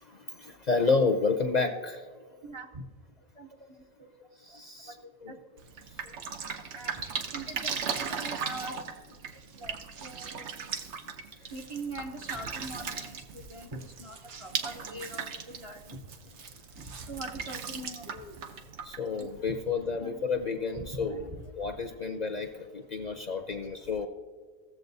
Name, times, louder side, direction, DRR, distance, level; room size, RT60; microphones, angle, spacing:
voice 1, 0.1-2.0 4.4-5.0 5.2-5.4 8.7-8.9 10.3-10.4 18.1-18.4 18.8-21.3 21.6-24.1, left 4 dB, 50° left, 5 dB, 0.6 m, -30 dB
voice 2, 2.4-2.8 3.4-3.5 4.0-4.1 5.3-5.4 6.7-8.7 9.5-9.8 10.0-10.4 11.5-16.0 16.9-18.1 19.1-19.3 19.9-20.1 21.1-21.2 21.8-21.9, right 2 dB, 35° right, 1 dB, 0.7 m, -42 dB
Drip, 5.6-19.7, right 6 dB, 85° right, 1.1 m, -38 dB
16.0 x 7.4 x 2.7 m, 1.5 s
omnidirectional pair, 1.1 m